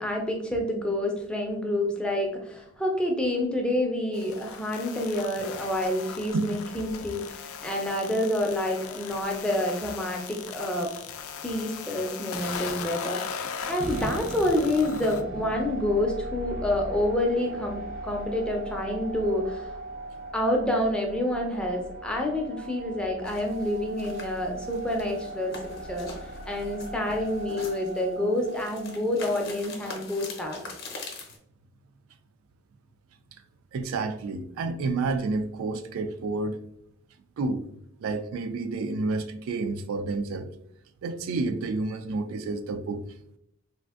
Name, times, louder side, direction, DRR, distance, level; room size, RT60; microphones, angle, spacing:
voice 1, 0.0-10.9 11.4-19.7 20.3-25.6 25.9-26.1 26.5-30.6, left 1 dB, 5° left, 0.4 m, -28 dB
sound 1, 4.1-15.2, left 6 dB, 85° left, 0.3 m, -38 dB
sound 2, 13.8-29.9, right 2 dB, 40° right, 0.6 m, -38 dB
sound 3, 23.2-31.4, left 3 dB, 50° left, 0.6 m, -44 dB
voice 2, 33.7-36.6 37.4-37.7 38.0-40.5 41.0-43.0, right 3 dB, 80° right, 0.3 m, -29 dB
3.4 x 2.5 x 2.3 m
head